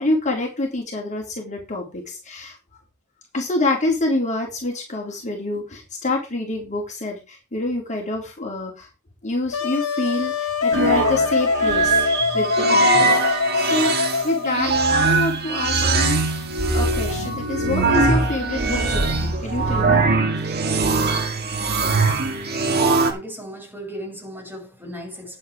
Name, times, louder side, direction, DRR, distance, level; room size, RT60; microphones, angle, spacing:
voice 1, 0.0-2.6 3.3-8.9 9.2-13.9 14.2-16.4 16.7-20.0 20.3-20.6, left 2 dB, 35° left, 3.4 m, -26 dB
Wind instrument woodwind instrument, 9.5-15.0, left 5 dB, 70° left, 1.2 m, -23 dB
sound 1, 10.7-23.1, right 3 dB, 50° right, 2.3 m, -21 dB
voice 2, 22.7-25.4, equal, 10° right, 5.5 m, -36 dB
11.0 x 7.8 x 4.8 m
head